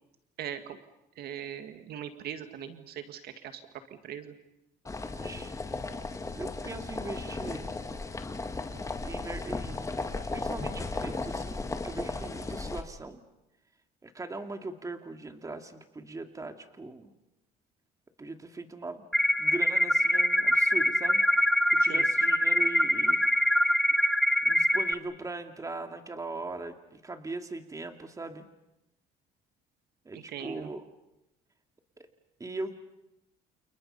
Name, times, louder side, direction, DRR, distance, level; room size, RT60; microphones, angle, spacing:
voice 1, 0.4-0.8 1.2-3.6 4.0-4.3 21.8-22.1 30.1-30.7, right 9 dB, 70° right, 8 dB, 2.1 m, -40 dB
sound 1, 4.8-12.8, left 3 dB, 20° left, 1.9 m, -35 dB
voice 2, 5.2-5.5 6.3-7.8 9.0-9.9 10.3-13.2 14.0-17.1 18.2-19.0 19.4-21.2 21.7-23.2 23.5-23.6 24.4-28.4 30.0-30.8 32.0-32.1 32.4-32.8, right 3 dB, 20° right, 6 dB, 2.4 m, -40 dB
sound 2, 19.1-24.9, equal, ahead, 1.0 m, -24 dB
29.5 x 29.5 x 5.6 m, 0.89 s
cardioid pair, 110°, 17 cm